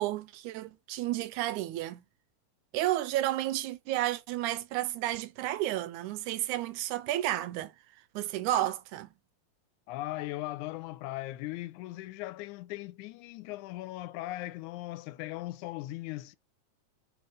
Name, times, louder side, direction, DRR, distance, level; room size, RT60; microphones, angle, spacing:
voice 1, 0.0-2.0 2.7-7.7 8.2-9.1, right 14 dB, 85° right, 2.0 m, -31 dB
voice 2, 9.9-16.4, left 17 dB, 85° left, 2.0 m, -38 dB
4.3 x 4.2 x 5.2 m
omnidirectional pair, 3.4 m